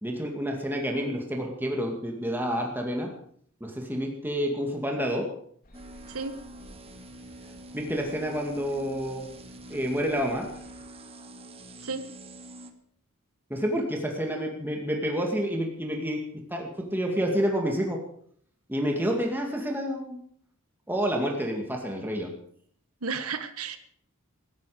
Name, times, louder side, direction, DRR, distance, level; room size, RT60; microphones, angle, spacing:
voice 1, 0.0-3.1 3.6-5.3 7.7-9.3 9.7-10.5 13.5-16.2 16.5-18.0 18.7-20.2 20.9-22.3, equal, 10° right, 1 dB, 2.3 m, -29 dB
sound 1, 5.6-10.8, left 1 dB, 45° left, 4.5 m, -53 dB
sound 2, 5.7-12.7, right 1 dB, 30° right, 1.5 m, -46 dB
voice 2, 6.1-6.4 11.8-12.1 23.0-23.8, right 4 dB, 85° right, 10 dB, 1.4 m, -33 dB
18.0 x 14.5 x 5.1 m, 0.62 s
head